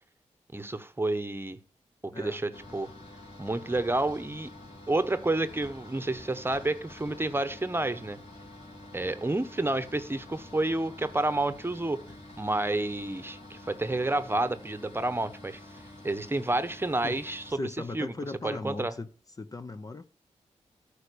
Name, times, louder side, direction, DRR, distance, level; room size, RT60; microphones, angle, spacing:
voice 1, 0.5-1.6 2.2-2.9 3.4-4.5 4.9-8.2 8.9-12.0 12.4-15.6 16.0-17.6 17.9-18.1 18.4-18.9, right 2 dB, 20° right, 1.0 m, -29 dB
voice 2, 2.1-2.4 17.0-17.2 17.5-19.1 19.4-20.1, left 3 dB, 30° left, 0.7 m, -38 dB
sound 1, 2.5-17.5, left 1 dB, 60° left, 4.4 m, -48 dB
13.0 x 5.1 x 6.8 m
cardioid pair, 70°, 12 cm